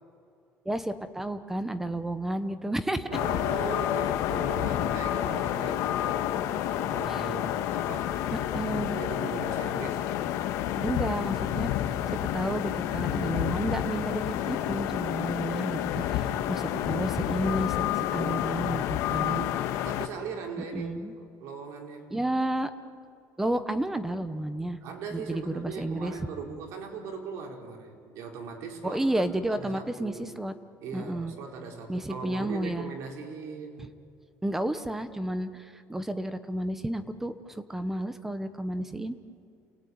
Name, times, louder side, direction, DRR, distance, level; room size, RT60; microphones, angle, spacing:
voice 1, 0.6-3.1 7.1-7.3 8.3-9.0 10.8-11.7 12.3-19.5 20.7-21.1 22.1-22.7 23.4-24.8 25.1-26.1 28.8-30.5 30.9-31.3 31.9-32.9 33.8-33.9 34.4-39.2, right 1 dB, 5° right, 11 dB, 1.0 m, -31 dB
voice 2, 3.0-10.1 19.1-22.1 24.8-29.0 29.5-30.3 30.8-33.9, right 5 dB, 65° right, 2 dB, 4.4 m, -39 dB
sound 1, 3.1-20.1, left 12 dB, 80° left, 1.5 m, -29 dB
29.5 x 20.5 x 9.5 m, 2.5 s
cardioid pair, 175°, 5 cm